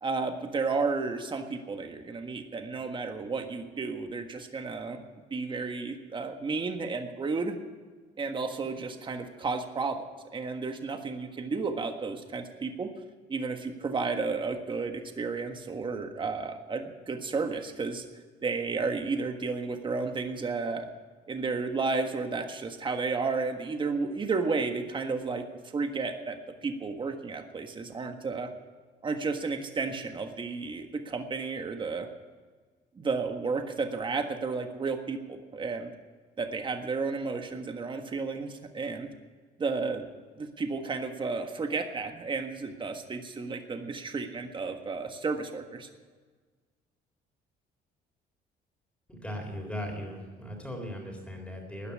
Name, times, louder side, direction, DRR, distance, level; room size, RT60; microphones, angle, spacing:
voice 1, 0.0-5.0 5.3-7.6 8.2-10.1 10.3-12.9 13.3-18.0 18.4-20.9 21.3-25.4 25.7-26.4 26.6-28.5 29.0-32.1 32.9-35.9 36.4-39.1 39.6-40.1 40.4-45.9, right 4 dB, 30° right, 6 dB, 1.5 m, -32 dB
voice 2, 49.1-51.9, equal, 5° left, 0 dB, 3.7 m, -38 dB
14.0 x 9.7 x 9.8 m, 1.5 s
cardioid pair, 110°, 17 cm